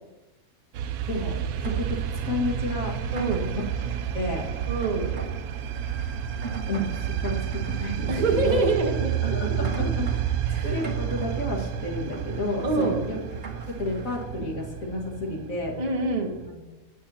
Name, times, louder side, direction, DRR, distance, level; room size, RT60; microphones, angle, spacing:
sound 1, 0.7-16.5, right 9 dB, 90° right, 1.1 m, -30 dB
Rain, 1.0-14.3, right 4 dB, 50° right, 1.7 m, -44 dB
voice 1, 1.1-3.0 3.5-3.6 4.1-4.5 6.7-6.9 7.2-8.7 9.2-10.4 10.6-13.2 13.5-15.8 16.5-16.6, left 2 dB, 70° left, -2 dB, 2.3 m, -31 dB
voice 2, 3.1-3.5 4.7-5.1 8.1-9.5 10.5-10.8 12.6-13.0 15.8-16.3, right 3 dB, 30° right, -1 dB, 1.3 m, -26 dB
20.5 x 7.3 x 2.9 m, 1.1 s
omnidirectional pair, 1.5 m